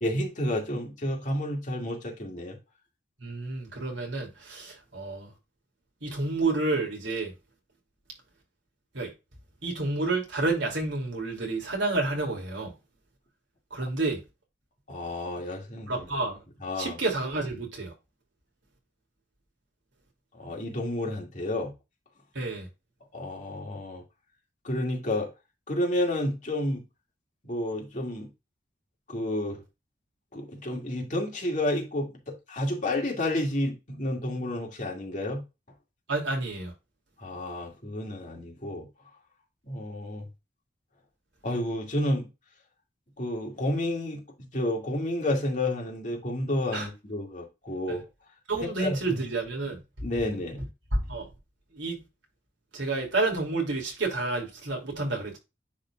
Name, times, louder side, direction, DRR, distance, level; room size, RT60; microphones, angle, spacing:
voice 1, 0.0-2.6 14.9-16.0 16.6-17.0 20.3-21.7 23.1-24.0 24.6-25.3 25.7-26.8 27.4-28.3 29.1-29.6 30.3-35.4 37.2-38.9 39.7-40.2 41.4-42.3 43.2-48.0 48.6-49.2 50.0-50.7, left 1 dB, 40° left, 2.3 m, -30 dB
voice 2, 3.2-5.3 6.0-7.3 8.9-9.1 9.6-12.7 13.7-14.2 15.8-16.4 16.8-17.9 22.3-22.7 36.1-36.7 46.7-46.9 47.9-48.0 48.5-49.8 50.9-51.3 51.7-52.0 52.7-55.4, right 2 dB, 85° right, 2.8 m, -29 dB
10.0 x 4.2 x 2.4 m
head